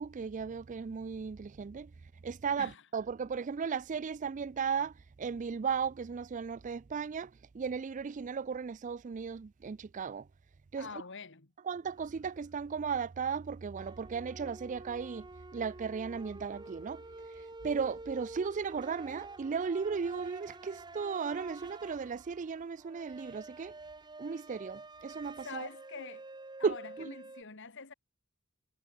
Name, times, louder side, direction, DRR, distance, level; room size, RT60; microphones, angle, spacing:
voice 1, 0.0-1.9 2.2-10.3 10.7-10.9 11.7-15.3 15.5-17.0 17.6-23.7 24.2-25.7 26.6-27.1, right 6 dB, 35° right, 0.4 m, -36 dB
voice 2, 10.8-11.5 25.4-26.3 26.6-27.9, left 4 dB, 60° left, 2.1 m, -45 dB
sound 1, 12.0-12.2 13.8-27.4, right 2 dB, 20° right, 1.0 m, -49 dB
head